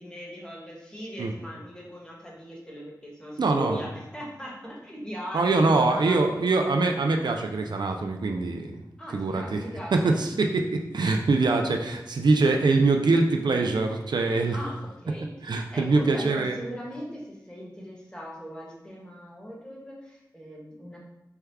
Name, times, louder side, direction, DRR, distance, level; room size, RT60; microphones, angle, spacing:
voice 1, 0.0-6.7 9.0-10.2 14.5-14.7 15.0-21.0, equal, 10° left, -4 dB, 1.2 m, -40 dB
voice 2, 3.4-3.8 5.3-8.8 9.1-9.6 9.9-14.6 15.4-16.6, right 3 dB, 80° right, 4 dB, 0.4 m, -23 dB
4.4 x 2.3 x 3.4 m, 0.93 s
wide cardioid pair, 60°, 7 cm